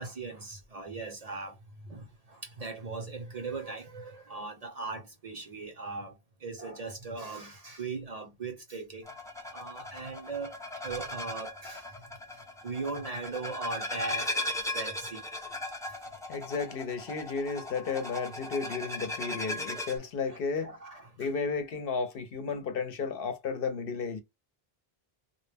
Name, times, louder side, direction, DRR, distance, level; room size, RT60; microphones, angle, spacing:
voice 1, 0.0-1.6 1.9-6.2 6.4-9.1 9.5-10.6 10.8-11.9 12.6-15.2 20.0-21.3, right 3 dB, 45° right, 0.6 m, -39 dB
sound 1, 9.1-20.0, left 2 dB, 5° left, 0.4 m, -38 dB
voice 2, 16.3-20.7 21.2-24.2, left 5 dB, 65° left, 0.8 m, -33 dB
2.1 x 2.1 x 3.2 m
omnidirectional pair, 1.1 m